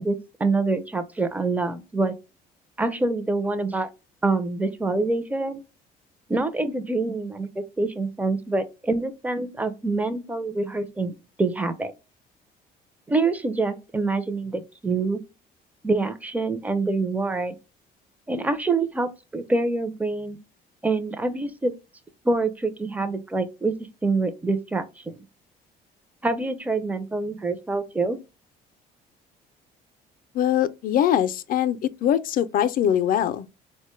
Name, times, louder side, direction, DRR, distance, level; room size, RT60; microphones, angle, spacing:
voice 1, 0.0-2.1 2.8-3.9 4.2-5.6 6.3-11.9 13.1-15.2 15.8-17.6 18.3-20.4 20.8-21.7 22.2-23.7 24.0-25.2 26.2-28.2, right 3 dB, 10° right, 0.5 m, -26 dB
voice 2, 30.3-33.5, left 10 dB, 55° left, 0.4 m, -22 dB
4.1 x 2.1 x 3.0 m
cardioid pair, 110°, 17 cm